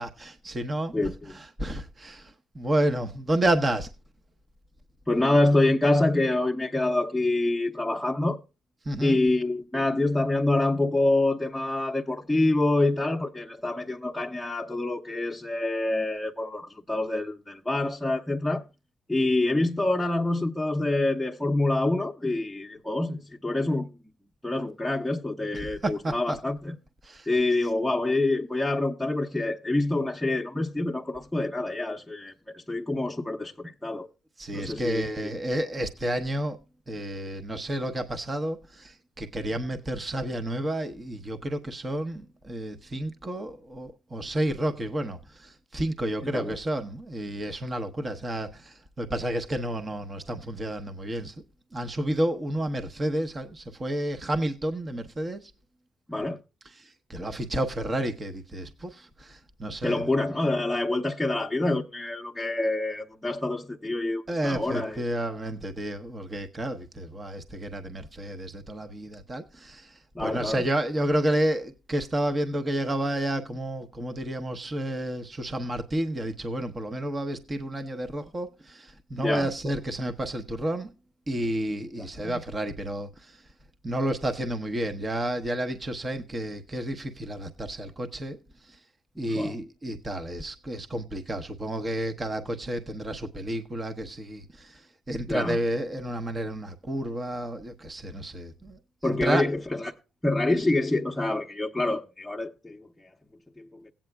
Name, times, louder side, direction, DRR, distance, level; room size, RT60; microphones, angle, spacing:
voice 1, 0.0-0.9 1.3-3.9 8.8-9.2 25.5-26.4 27.0-27.3 34.4-36.6 36.9-51.3 51.7-55.5 56.6-60.0 64.3-80.9 81.3-83.4 83.8-88.4 88.6-88.8 89.2-99.5, right 1 dB, 30° right, 0.9 m, -31 dB
voice 2, 5.1-8.4 9.0-18.6 19.1-23.9 24.4-26.7 27.3-34.1 34.5-35.3 46.2-46.6 56.1-56.4 59.8-65.0 70.1-70.6 79.2-79.5 82.2-82.4 89.3-89.5 95.3-95.6 99.0-99.9 100.2-102.9 103.6-103.7, left 2 dB, 5° left, 0.8 m, -26 dB
16.0 x 8.9 x 2.3 m
cardioid pair, 90°, 0 cm